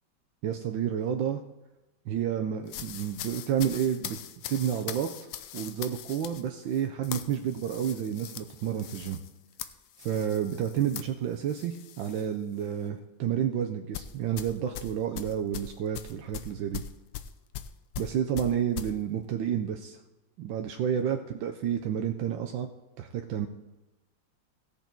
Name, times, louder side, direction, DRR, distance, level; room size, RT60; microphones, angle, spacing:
voice 1, 0.4-1.4 2.1-4.2 4.5-5.1 5.5-9.2 10.0-16.8 18.0-20.0 20.4-22.7 23.0-23.5, right 9 dB, 85° right, 5 dB, 1.4 m, -30 dB
sound 1, 2.7-12.3 12.6-12.9 13.9-18.9, left 11 dB, 85° left, 1.4 m, -41 dB
16.5 x 6.9 x 4.5 m, 1.0 s
omnidirectional pair, 2.0 m